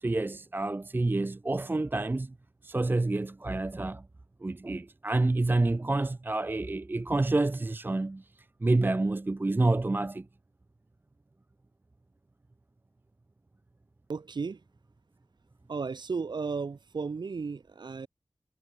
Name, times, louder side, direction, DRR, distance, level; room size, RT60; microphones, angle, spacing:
voice 1, 0.0-2.3 2.6-4.0 4.4-8.3 8.6-10.3, right 2 dB, 25° right, 0.4 m, -28 dB
voice 2, 14.1-14.6 15.7-18.1, right 4 dB, 90° right, 1.2 m, -34 dB
wide cardioid pair, 60°, 7 cm